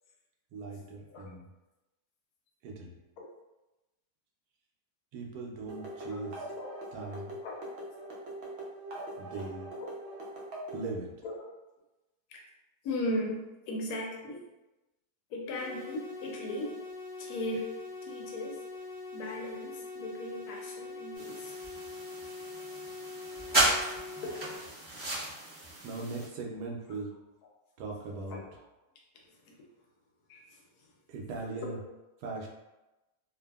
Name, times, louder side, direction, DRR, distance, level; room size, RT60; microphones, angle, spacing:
voice 1, 0.5-1.5 2.6-2.9 5.1-6.4 6.9-7.3 9.2-9.7 10.7-11.1 25.8-27.1 27.8-28.4 31.1-31.8 32.2-32.5, right 3 dB, 85° right, -1 dB, 1.1 m, -39 dB
sound 1, 5.7-10.9, right 1 dB, 60° right, 0.7 m, -42 dB
voice 2, 12.8-13.4 13.7-14.4 15.3-16.8 17.2-17.7 18.0-18.6 19.1-21.6 24.2-24.3 28.3-28.4 29.5-29.6 30.3-30.6 31.6-31.7, left 1 dB, 80° left, -1 dB, 1.2 m, -37 dB
sound 2, 15.6-24.6, left 3 dB, 55° left, 0.6 m, -43 dB
sound 3, 21.2-26.3, right 2 dB, 5° right, 1.0 m, -33 dB
2.7 x 2.5 x 2.3 m, 1.0 s
omnidirectional pair, 1.7 m